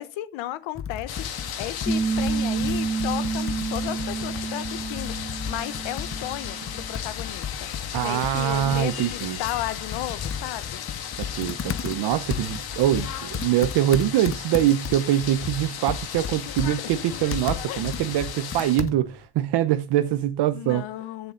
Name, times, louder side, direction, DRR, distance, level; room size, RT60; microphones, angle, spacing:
voice 1, 0.0-7.7 8.0-10.8 16.5-16.8 17.7-17.9 20.5-21.3, left 14 dB, 85° left, 1.1 m, -34 dB
Computer keyboard, 0.7-19.3, left 7 dB, 30° left, 0.8 m, -35 dB
sound 1, 1.1-18.8, left 9 dB, 55° left, 2.0 m, -36 dB
Piano, 1.9-7.0, right 4 dB, ahead, 0.8 m, -29 dB
voice 2, 7.9-9.4 11.3-20.9, right 12 dB, 65° right, 0.9 m, -24 dB
16.0 x 7.0 x 3.8 m
cardioid pair, 150°, 44 cm